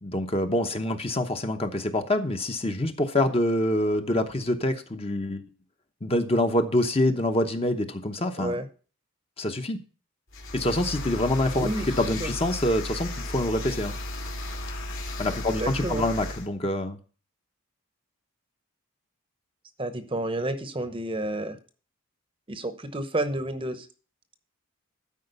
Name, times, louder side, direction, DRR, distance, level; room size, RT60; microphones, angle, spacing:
voice 1, 0.0-5.4 6.0-8.6 9.4-9.8 10.5-11.7 12.0-13.9 15.2-17.0, left 1 dB, 25° left, 6 dB, 0.9 m, -26 dB
sound 1, 10.3-16.5, left 1 dB, 70° left, 2.5 m, -34 dB
voice 2, 11.5-11.9 12.2-12.3 15.4-16.0 19.8-21.6 22.5-23.9, right 1 dB, 25° right, 10 dB, 0.8 m, -30 dB
12.0 x 4.9 x 6.6 m, 0.39 s
head